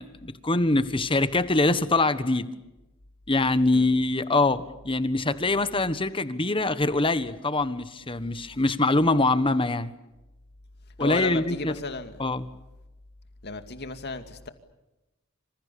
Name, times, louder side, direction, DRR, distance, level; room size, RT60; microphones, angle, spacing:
voice 1, 0.0-2.5 3.3-9.9 11.0-11.7 12.2-12.5, left 2 dB, 25° left, 12 dB, 1.4 m, -24 dB
voice 2, 11.0-12.2 13.4-14.5, left 3 dB, 50° left, 8 dB, 2.4 m, -34 dB
27.0 x 27.0 x 7.0 m, 1.0 s
head